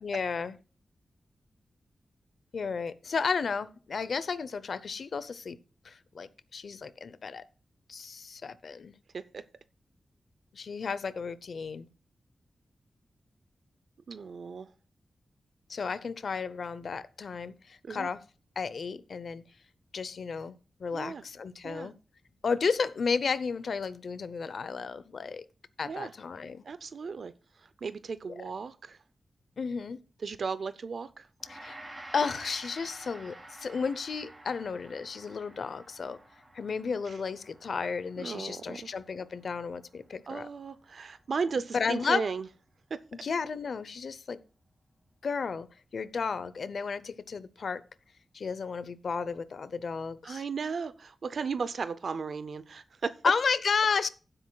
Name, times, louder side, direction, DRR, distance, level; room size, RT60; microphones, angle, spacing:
voice 1, 0.0-0.5 2.5-5.6 5.8-7.4 7.9-8.9 10.5-11.9 15.7-18.2 18.6-19.4 19.9-20.5 20.8-21.9 22.4-25.4 25.8-26.6 29.6-30.0 31.5-31.8 32.1-36.2 36.5-40.5 41.7-42.3 43.2-44.4 45.2-45.7 45.9-47.8 48.3-50.4 53.2-54.1, left 5 dB, 70° left, 0.7 m, -33 dB
voice 2, 14.1-14.7 17.8-18.1 20.9-21.2 21.6-21.9 25.8-26.1 26.6-27.3 27.8-29.0 30.2-31.3 38.2-38.9 40.3-42.5 42.9-43.0 50.2-53.2, right 5 dB, 70° right, 0.5 m, -35 dB
Gong, 31.4-40.8, right 1 dB, 25° right, 3.1 m, -50 dB
15.5 x 7.8 x 2.3 m
wide cardioid pair, 90°, 0 cm